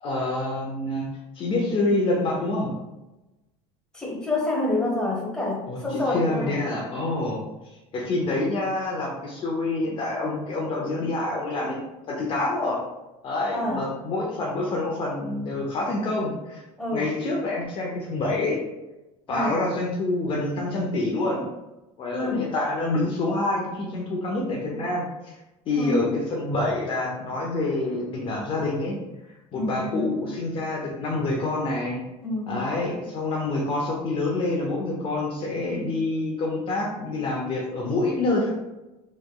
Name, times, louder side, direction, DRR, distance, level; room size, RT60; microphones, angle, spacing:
voice 1, 0.0-1.1 1.3-2.7 5.7-7.4 7.9-11.8 12.1-12.8 13.2-16.6 16.9-18.6 19.3-21.4 22.0-25.4 25.7-29.0 29.5-32.0 32.5-38.6, left 2 dB, 40° left, -2 dB, 0.6 m, -27 dB
voice 2, 3.9-6.6 13.5-13.8 16.8-17.1 19.3-19.6 22.1-22.5 25.7-26.0 29.5-30.2 32.2-32.7, left 1 dB, 5° left, -4 dB, 1.1 m, -28 dB
3.2 x 3.0 x 2.3 m, 1.0 s
supercardioid pair, 115°, 13 cm